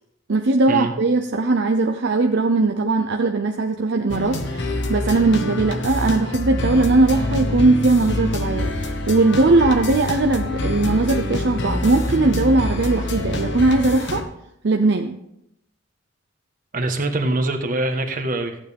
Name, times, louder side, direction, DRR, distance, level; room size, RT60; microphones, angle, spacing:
voice 1, 0.3-14.2 14.6-15.2, right 2 dB, 65° right, 4 dB, 0.7 m, -19 dB
sound 1, 4.1-14.2, left 2 dB, 65° left, 1.1 m, -26 dB
voice 2, 16.7-18.6, right 2 dB, 45° right, 5 dB, 1.3 m, -23 dB
14.0 x 9.0 x 3.6 m, 0.79 s
head